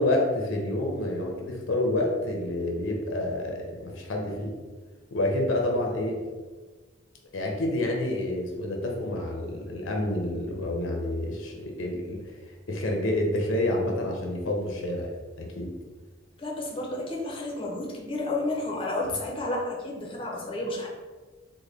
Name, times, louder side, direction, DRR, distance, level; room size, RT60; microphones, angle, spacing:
voice 1, 0.0-4.5 5.1-6.2 7.3-12.3 12.7-15.1 15.4-15.7, left 1 dB, 80° left, 1 dB, 0.6 m, -28 dB
voice 2, 16.4-20.9, left 2 dB, 25° left, -2 dB, 0.6 m, -31 dB
3.8 x 2.1 x 3.3 m, 1.4 s
head